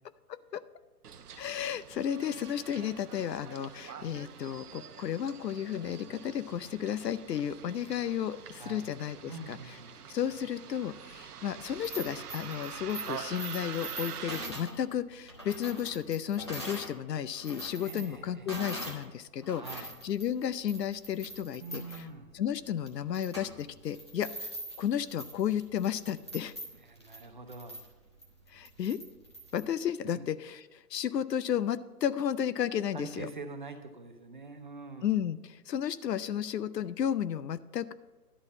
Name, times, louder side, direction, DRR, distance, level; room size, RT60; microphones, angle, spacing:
Bus, 1.0-14.5, right 8 dB, 70° right, 0.8 m, -45 dB
voice 1, 1.4-9.6 10.1-19.6 20.0-21.8 22.3-24.5 24.8-26.5 28.5-29.0 29.5-33.3 35.0-37.9, left 9 dB, 85° left, 15 dB, 0.7 m, -33 dB
voice 2, 8.5-8.9 9.2-10.0 17.8-18.5 19.5-19.9 21.6-22.4 26.8-27.9 30.0-30.2 32.9-35.2, right 3 dB, 30° right, 6 dB, 0.5 m, -45 dB
sound 1, 11.7-16.9 17.3-19.1 19.4-29.7, right 1 dB, 20° left, 0.5 m, -44 dB
11.0 x 4.1 x 7.1 m, 1.1 s
hypercardioid pair, 155°, 48 cm